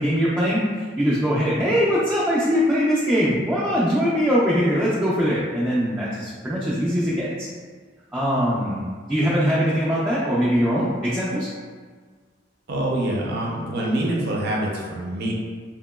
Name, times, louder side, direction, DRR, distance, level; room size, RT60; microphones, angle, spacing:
voice 1, 0.0-7.5 8.1-8.8 9.1-11.5, equal, 10° right, -8 dB, 0.4 m, -22 dB
voice 2, 12.7-15.3, right 1 dB, 60° right, -2 dB, 0.5 m, -25 dB
2.9 x 2.8 x 2.2 m, 1.5 s
head